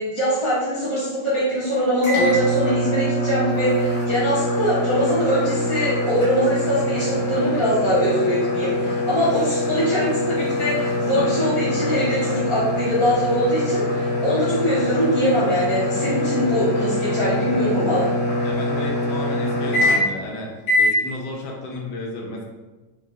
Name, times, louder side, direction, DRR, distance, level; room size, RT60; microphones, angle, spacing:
voice 1, 0.0-18.1, equal, 35° right, -11 dB, 0.5 m, -22 dB
sound 1, 2.0-20.3 20.6-21.0, left 1 dB, 60° left, 1.4 m, -23 dB
voice 2, 18.4-20.5 20.8-22.4, left 2 dB, 80° left, 0 dB, 1.2 m, -33 dB
3.3 x 2.1 x 3.2 m, 1.2 s
omnidirectional pair, 1.8 m